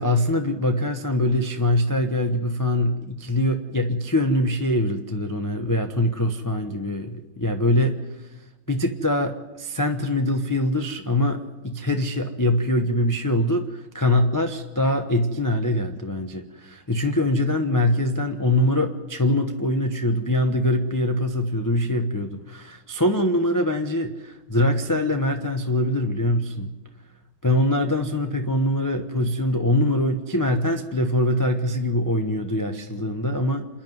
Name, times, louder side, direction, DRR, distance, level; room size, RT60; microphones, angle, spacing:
voice 1, 0.0-8.0 8.7-26.7 27.4-33.7, left 1 dB, 15° left, 4 dB, 0.7 m, -23 dB
27.5 x 10.5 x 9.4 m, 1.1 s
omnidirectional pair, 2.0 m